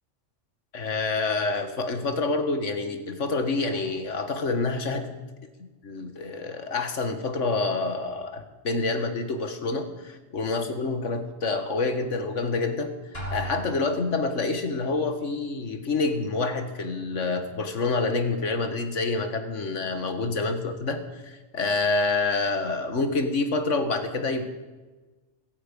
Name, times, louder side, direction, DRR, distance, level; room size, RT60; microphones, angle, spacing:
voice 1, 0.7-5.1 5.6-12.9 13.3-24.4, left 3 dB, 85° left, 8 dB, 1.9 m, -27 dB
Drum, 13.1-14.3, right 1 dB, 55° left, 3.8 m, -36 dB
16.5 x 15.5 x 5.4 m, 1.2 s
omnidirectional pair, 1.2 m